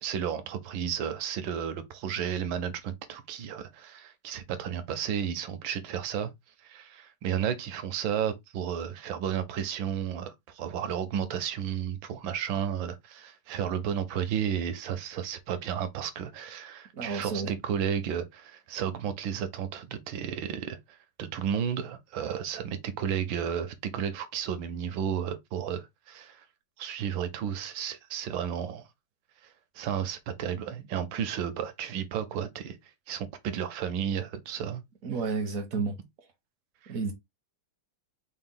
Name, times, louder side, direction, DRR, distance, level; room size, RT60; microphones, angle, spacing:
voice 1, 0.0-6.3 6.6-26.4 26.8-28.9 29.4-32.8 33.1-34.8 36.8-37.0, right 8 dB, 75° right, 1.4 m, -33 dB
voice 2, 16.9-17.5 35.0-35.9 36.9-37.1, right 4 dB, 55° right, 1.0 m, -31 dB
4.9 x 2.3 x 3.6 m
omnidirectional pair, 2.3 m